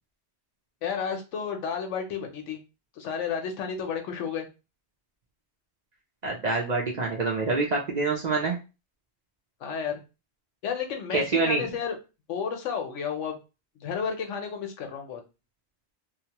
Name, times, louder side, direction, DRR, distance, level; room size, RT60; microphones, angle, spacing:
voice 1, 0.8-2.6 3.0-4.5 9.6-10.0 10.6-12.0 12.3-13.4 13.8-15.2, left 6 dB, 90° left, 5 dB, 1.0 m, -32 dB
voice 2, 6.2-8.6 11.1-11.7, right 3 dB, 50° right, -1 dB, 0.5 m, -26 dB
2.8 x 2.1 x 2.8 m, 0.29 s
omnidirectional pair, 1.2 m